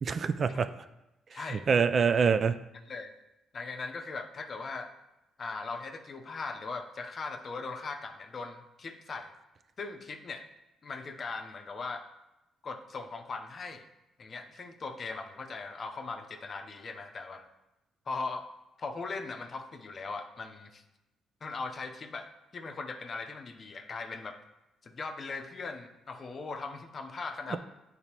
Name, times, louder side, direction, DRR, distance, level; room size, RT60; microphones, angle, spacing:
voice 1, 0.0-0.7 1.3-2.6, right 6 dB, 45° right, 10 dB, 0.3 m, -26 dB
voice 2, 1.3-1.7 2.9-3.1 3.5-4.9 5.4-9.3 9.8-10.5 10.8-12.0 12.6-13.8 14.2-17.5 18.1-18.5 18.8-20.8 21.4-24.4 24.8-27.6, left 4 dB, 45° left, 7 dB, 0.6 m, -39 dB
8.6 x 4.0 x 2.9 m, 0.94 s
cardioid pair, 90°, 0 cm